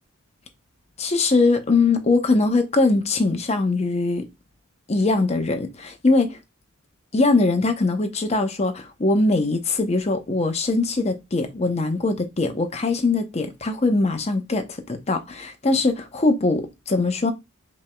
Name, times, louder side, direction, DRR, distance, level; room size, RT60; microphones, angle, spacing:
voice 1, 1.0-4.3 4.9-6.4 7.1-17.3, left 3 dB, 30° left, 0.7 m, -21 dB
5.3 x 3.0 x 2.2 m
head